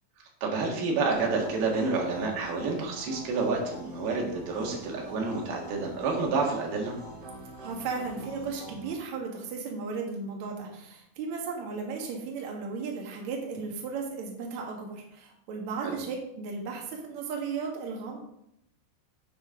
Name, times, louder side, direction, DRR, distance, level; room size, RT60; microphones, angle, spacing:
voice 1, 0.4-6.9 15.8-15.9, right 3 dB, 90° right, 0 dB, 3.7 m, -29 dB
sound 1, 1.1-8.9, right 2 dB, 40° right, 1.7 m, -44 dB
voice 2, 7.6-18.2, right 4 dB, 55° right, 0 dB, 2.7 m, -35 dB
10.5 x 7.5 x 3.8 m, 0.78 s
omnidirectional pair, 4.3 m